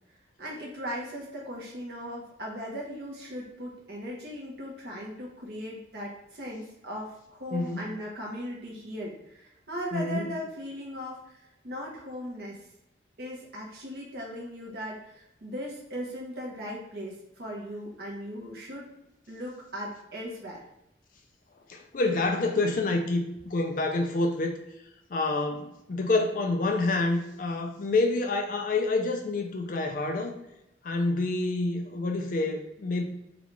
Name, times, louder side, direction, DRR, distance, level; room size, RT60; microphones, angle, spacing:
voice 1, 0.4-12.6 13.2-18.9 19.3-20.6, equal, 60° right, -3 dB, 0.8 m, -38 dB
voice 2, 7.5-7.9 9.9-10.2 21.7-24.5 25.1-30.3 30.8-33.1, left 2 dB, 45° left, 3 dB, 0.4 m, -27 dB
3.9 x 2.3 x 3.1 m, 0.86 s
head